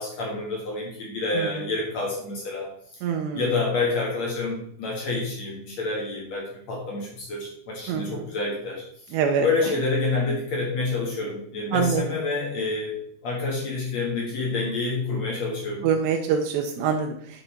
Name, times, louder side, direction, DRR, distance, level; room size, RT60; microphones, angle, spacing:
voice 1, 0.0-2.7 3.3-13.0 13.2-15.9, left 3 dB, 55° left, -3 dB, 2.2 m, -28 dB
voice 2, 3.0-3.5 7.9-8.3 9.1-9.5 11.7-12.0 15.8-17.4, right 6 dB, 90° right, 2 dB, 2.8 m, -25 dB
7.9 x 5.6 x 4.3 m, 0.64 s
omnidirectional pair, 4.9 m